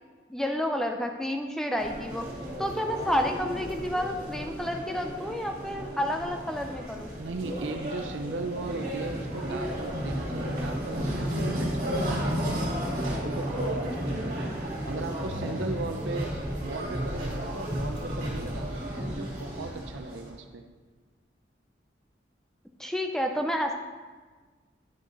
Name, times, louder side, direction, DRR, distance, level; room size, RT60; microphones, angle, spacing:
voice 1, 0.3-2.3 2.6-7.2 22.8-23.7, equal, 5° left, 4 dB, 0.5 m, -30 dB
sound 1, 1.8-20.3, equal, 45° right, 2.4 m, -33 dB
voice 2, 7.2-16.3 16.6-20.6, right 3 dB, 90° right, 6 dB, 0.6 m, -38 dB
10.0 x 6.3 x 4.0 m, 1.4 s
head